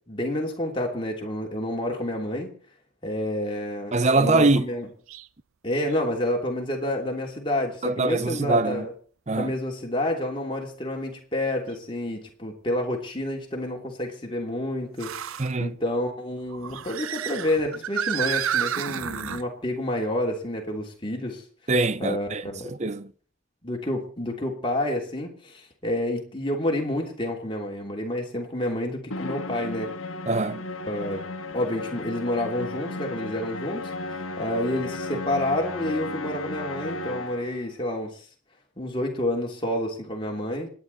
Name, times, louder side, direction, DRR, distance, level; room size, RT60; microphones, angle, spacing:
voice 1, 0.1-2.5 3.0-4.9 5.6-8.9 9.4-21.4 22.0-22.7 23.6-29.9 30.9-31.2 31.5-38.3 38.8-40.7, left 1 dB, 25° left, 3.1 m, -29 dB
voice 2, 3.9-4.7 7.8-8.9 9.3-9.5 15.4-15.7 21.7-23.1 30.3-30.6, right 3 dB, 35° right, 0.7 m, -23 dB
sound 1, 5.1-5.3 5.9-6.0 8.1-8.2 11.7-11.8 15.0-15.5 16.5-19.4, right 9 dB, 80° right, 0.6 m, -30 dB
Musical instrument, 29.1-37.6, left 2 dB, 80° left, 1.6 m, -34 dB
26.5 x 10.5 x 4.2 m
head